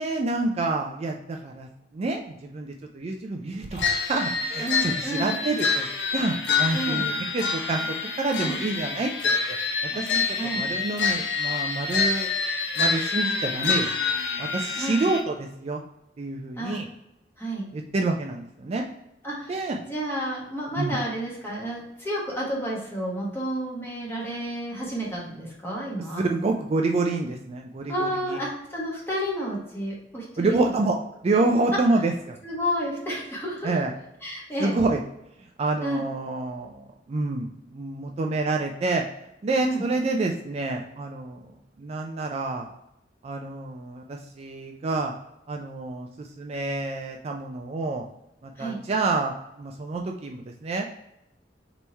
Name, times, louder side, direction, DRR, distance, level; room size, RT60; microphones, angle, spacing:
voice 1, 0.0-1.7 1.9-5.9 6.1-7.8 8.2-9.1 9.5-9.6 10.0-12.3 12.8-13.9 14.4-15.8 16.2-16.9 17.7-18.8 19.5-19.8 20.8-21.0 26.3-28.4 30.4-31.0 31.2-32.4 33.6-33.9 34.6-35.0 35.6-39.0 39.4-41.4 41.8-42.7 43.2-45.1 45.5-48.1 48.4-50.8, right 2 dB, 35° right, 2 dB, 0.3 m, -28 dB
sound 1, 3.8-15.2, left 4 dB, 75° left, 0.6 m, -27 dB
voice 2, 4.6-5.3 6.7-7.1 8.4-8.6 9.9-10.0 10.4-10.6 14.7-15.1 16.6-16.8 17.4-17.7 19.2-26.2 27.9-30.6 31.7-31.8 32.4-33.8 34.2-34.8 35.8-36.0 39.6-39.8 48.6-48.8, equal, 15° left, -4 dB, 1.3 m, -31 dB
3.4 x 3.0 x 4.0 m, 0.85 s
head